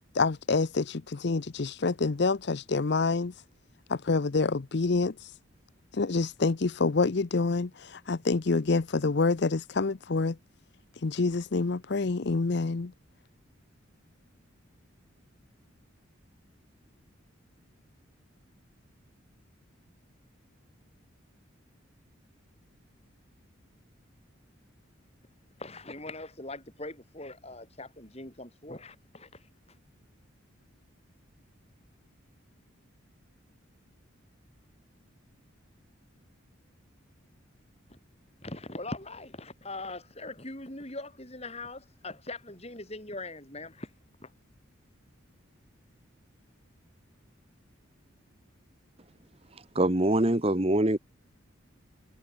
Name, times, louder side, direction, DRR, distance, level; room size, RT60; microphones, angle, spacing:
voice 1, 0.1-3.3 3.9-5.3 5.9-10.4 11.0-12.9, left 3 dB, 55° left, 0.6 m, -27 dB
voice 2, 25.6-29.5 37.9-38.0 38.4-43.9 44.2-44.3, left 2 dB, 30° left, 6.9 m, -41 dB
voice 3, 49.7-51.0, right 1 dB, 30° right, 1.3 m, -24 dB
head